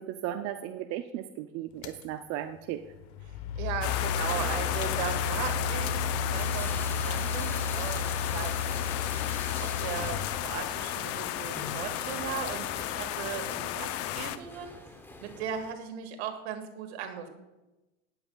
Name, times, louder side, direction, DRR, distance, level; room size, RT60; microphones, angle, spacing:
voice 1, 0.0-2.8, right 12 dB, 50° right, 8 dB, 0.5 m, -36 dB
sound 1, 1.8-2.0 2.9-10.9, left 5 dB, 80° left, 1.1 m, -33 dB
voice 2, 3.6-9.0 9.6-14.7 15.2-17.3, right 7 dB, 75° right, 6 dB, 1.8 m, -37 dB
sound 2, 3.8-14.4, left 13 dB, 45° left, 0.6 m, -33 dB
sound 3, 4.3-15.7, left 2 dB, 5° left, 0.8 m, -45 dB
18.0 x 8.0 x 2.3 m, 1.0 s
supercardioid pair, 120°, 33 cm